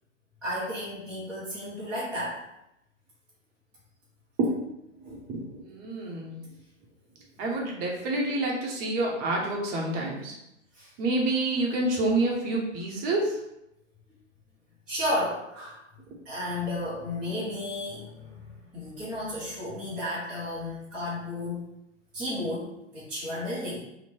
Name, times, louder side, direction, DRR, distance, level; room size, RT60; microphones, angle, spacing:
voice 1, 0.4-2.4 10.8-10.9 14.9-15.8 16.3-21.6 22.1-23.8, left 1 dB, ahead, -12 dB, 0.4 m, -33 dB
voice 2, 5.0-6.4 7.4-10.3 11.0-13.3, right 2 dB, 25° right, -1 dB, 0.8 m, -28 dB
2.9 x 2.9 x 4.3 m, 0.85 s
figure-of-eight pair, 110°, 39 cm